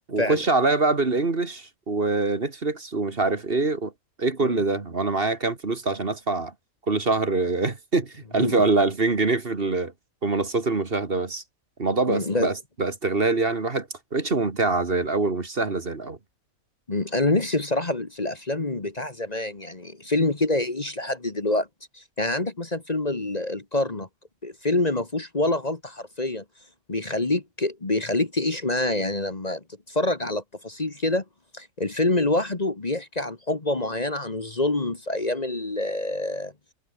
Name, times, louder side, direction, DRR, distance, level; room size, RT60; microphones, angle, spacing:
voice 1, 0.1-3.9 4.2-6.5 6.9-9.9 10.2-11.4 11.8-16.2, right 3 dB, 45° right, 2.2 m, -24 dB
voice 2, 12.1-12.5 16.9-21.7 21.9-24.1 24.4-26.4 26.9-31.2 31.5-36.5, left 2 dB, 30° left, 1.7 m, -26 dB
omnidirectional pair, 1.4 m